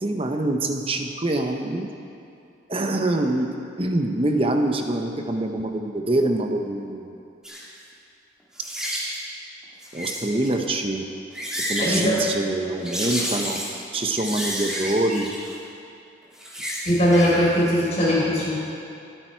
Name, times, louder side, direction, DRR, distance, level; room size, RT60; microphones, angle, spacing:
voice 1, 0.0-1.9 2.7-3.5 3.8-7.2 9.9-11.0 11.7-13.6 13.9-15.3, right 2 dB, 30° right, 4 dB, 0.9 m, -25 dB
sound 1, 7.4-7.6 8.6-9.2 9.8-10.5 11.2-12.1 12.8-13.8 14.2-15.5 16.2-17.4 17.7-17.8, equal, 5° right, 2.4 m, -30 dB
voice 2, 11.8-12.2 16.8-18.6, equal, 35° left, -6 dB, 4.2 m, -20 dB
22.5 x 9.0 x 4.6 m, 2.6 s
head